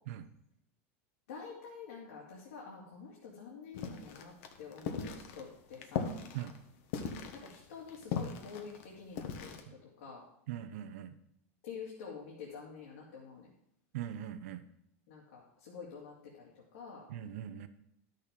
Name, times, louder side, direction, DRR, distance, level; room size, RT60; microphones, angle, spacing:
voice 1, 1.3-6.1 7.3-10.2 11.6-13.5 15.1-17.1, left 5 dB, 85° left, -4 dB, 2.6 m, -48 dB
sound 1, 3.7-9.6, left 6 dB, 65° left, 1.4 m, -39 dB
voice 2, 10.5-11.2 13.9-14.6 17.1-17.7, right 11 dB, 75° right, 11 dB, 0.9 m, -41 dB
11.5 x 6.6 x 5.2 m, 0.74 s
supercardioid pair, 130°, 8 cm